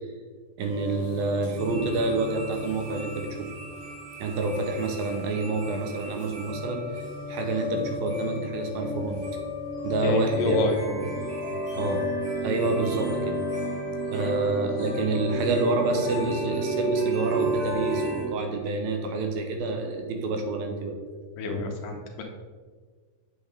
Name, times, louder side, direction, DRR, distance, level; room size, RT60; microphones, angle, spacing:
sound 1, 0.6-18.3, equal, 50° right, 2.9 m, -32 dB
voice 1, 0.6-3.5 4.2-6.9 7.3-9.2 9.8-11.1 11.7-12.0 12.4-13.4 14.1-21.0, right 3 dB, 85° right, 4 dB, 2.7 m, -28 dB
voice 2, 10.0-10.8 11.8-11.9 14.1-14.3 21.4-22.2, left 2 dB, 75° left, 2 dB, 2.4 m, -28 dB
8.3 x 6.9 x 3.5 m, 1.5 s
omnidirectional pair, 4.2 m